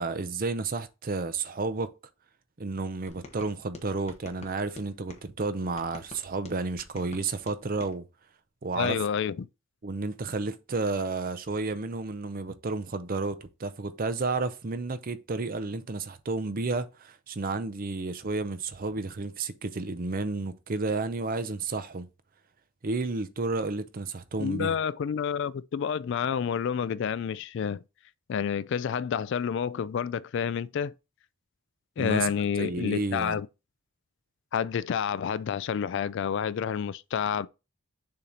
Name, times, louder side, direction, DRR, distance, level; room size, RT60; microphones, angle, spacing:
voice 1, 0.0-1.9 2.6-8.0 8.6-9.0 9.8-22.1 22.8-24.8 32.0-32.3 32.6-33.4, right 3 dB, 40° right, 0.6 m, -31 dB
sound 1, 3.1-5.3 5.8-7.9, left 2 dB, 30° left, 1.1 m, -47 dB
voice 2, 8.8-9.5 24.4-27.8 28.3-30.9 32.0-33.5 34.5-37.5, left 7 dB, 55° left, 0.3 m, -29 dB
6.9 x 2.9 x 5.0 m
head